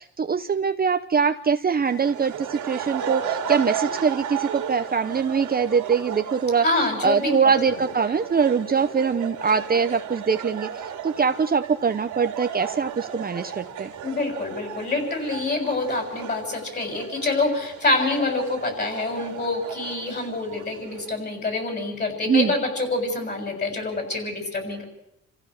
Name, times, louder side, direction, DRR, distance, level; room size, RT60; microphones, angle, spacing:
voice 1, 0.0-6.6 7.0-13.9 22.3-22.5, right 6 dB, 30° right, 8 dB, 0.9 m, -23 dB
sound 1, 1.8-21.1, right 8 dB, 80° right, 2.8 m, -35 dB
voice 2, 6.6-7.4 7.7-7.9 14.0-24.8, left 2 dB, 35° left, 4 dB, 7.4 m, -26 dB
28.0 x 15.5 x 6.6 m, 0.82 s
cardioid pair, 90°, 30 cm